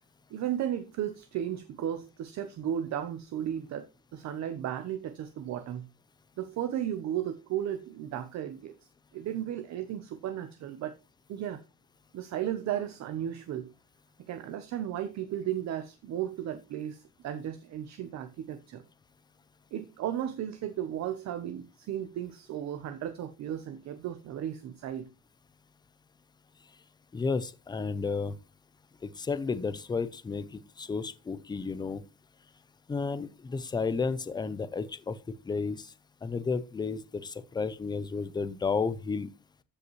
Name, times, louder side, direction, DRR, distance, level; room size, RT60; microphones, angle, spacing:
voice 1, 0.3-3.9 4.1-5.9 6.4-8.8 9.1-10.9 11.3-11.6 12.1-13.7 14.3-18.8 19.7-25.1, right 10 dB, 50° right, 0.9 m, -35 dB
voice 2, 27.1-28.3 29.0-32.0 32.9-35.2 35.4-35.9 36.2-39.3, left 4 dB, 10° left, 0.5 m, -32 dB
14.5 x 5.4 x 3.1 m
cardioid pair, 180°, 35 cm